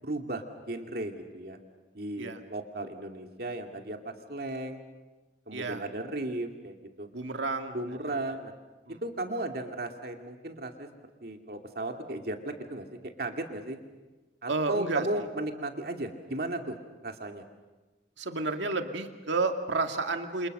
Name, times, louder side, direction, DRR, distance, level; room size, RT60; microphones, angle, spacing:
voice 1, 0.0-1.6 1.9-4.8 5.5-7.1 7.7-8.5 9.0-10.9 11.2-13.8 14.4-16.7 17.0-17.4, right 2 dB, 55° right, 4 dB, 2.6 m, -35 dB
voice 2, 5.5-5.8 7.1-7.8 8.0-8.1 8.9-9.0 14.5-15.1 18.2-20.5, right 3 dB, 80° right, 5 dB, 2.2 m, -31 dB
29.0 x 27.0 x 6.7 m, 1.2 s
head